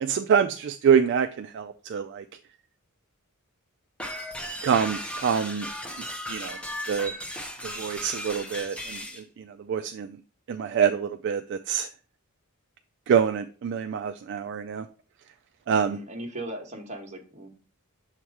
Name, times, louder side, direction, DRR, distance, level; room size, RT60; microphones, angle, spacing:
voice 1, 0.0-2.2 4.6-5.7 6.3-6.6 6.9-7.1 7.6-9.0 9.7-10.1 10.5-11.9 13.1-14.8 15.7-16.0, right 7 dB, 55° right, 8 dB, 0.3 m, -25 dB
sound 1, 4.0-9.2, equal, 5° left, 0.8 m, -36 dB
voice 2, 15.7-17.5, right 1 dB, 30° right, 1 dB, 1.3 m, -38 dB
7.2 x 3.0 x 4.6 m, 0.39 s
head